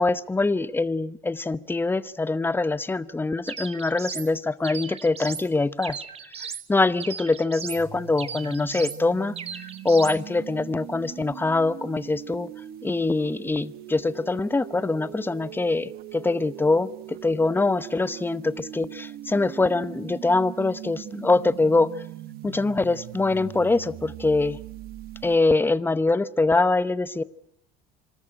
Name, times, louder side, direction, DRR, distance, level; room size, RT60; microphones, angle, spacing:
voice 1, 0.0-6.0 6.7-9.4 9.8-12.5 12.8-21.9 22.4-24.6 25.2-27.2, left 3 dB, 10° left, 16 dB, 0.8 m, -24 dB
sound 1, 3.5-4.3 4.6-5.5 5.8-6.7 7.0-7.8 8.2-9.0 9.4-10.2, right 6 dB, 35° right, 1.5 m, -37 dB
sound 2, 7.8-25.4, right 13 dB, 60° right, 1.0 m, -41 dB
26.0 x 13.5 x 9.9 m, 0.83 s
supercardioid pair, 95°, 18 cm